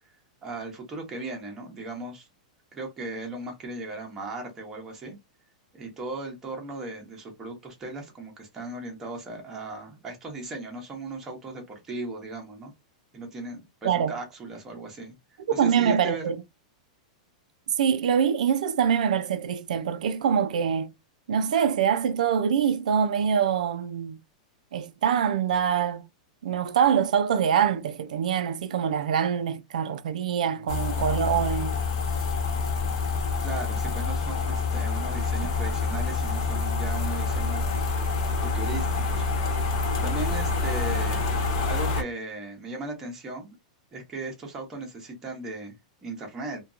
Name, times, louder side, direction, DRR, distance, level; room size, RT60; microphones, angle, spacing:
voice 1, 0.4-2.3 2.7-5.2 5.7-12.7 13.1-15.2 15.5-16.2 33.4-37.7 37.9-39.3 40.0-41.3 41.6-43.5 43.9-45.7 46.0-46.6, right 2 dB, 10° right, 0.7 m, -37 dB
voice 2, 13.8-14.1 15.5-16.4 17.8-20.9 21.3-24.2 24.7-26.0 26.4-31.7, right 8 dB, 90° right, 0.4 m, -24 dB
sound 1, 30.7-42.0, left 4 dB, 45° left, 1.0 m, -27 dB
2.8 x 2.2 x 2.4 m
supercardioid pair, 180°, 4 cm